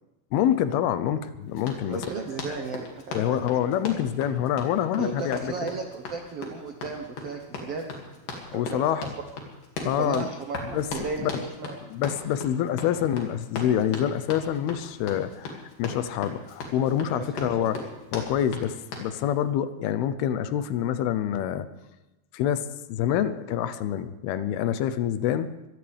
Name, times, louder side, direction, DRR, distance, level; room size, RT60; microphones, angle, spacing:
voice 1, 0.3-2.0 3.1-5.5 8.5-9.1 9.8-10.3 10.7-11.4 11.9-17.8 18.1-21.7 22.3-25.5, left 10 dB, 85° left, 12 dB, 2.7 m, -26 dB
Run, 1.6-19.1, left 3 dB, 65° left, 3.8 m, -38 dB
voice 2, 1.9-3.4 5.0-8.8 9.8-11.7 17.1-17.7, right 4 dB, 85° right, 3 dB, 1.3 m, -35 dB
24.0 x 16.5 x 3.4 m, 0.99 s
omnidirectional pair, 4.4 m